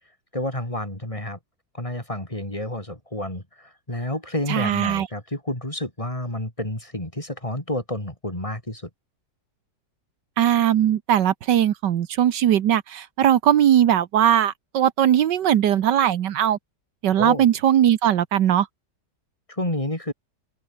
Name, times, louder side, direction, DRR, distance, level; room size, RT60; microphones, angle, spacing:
voice 1, 0.3-1.4 1.7-8.9 17.2-17.5 19.5-20.1, left 1 dB, 20° left, 4.5 m, -30 dB
voice 2, 4.5-5.1 10.4-16.6 17.0-18.7, right 10 dB, 80° right, 1.6 m, -19 dB
open air
omnidirectional pair, 1.9 m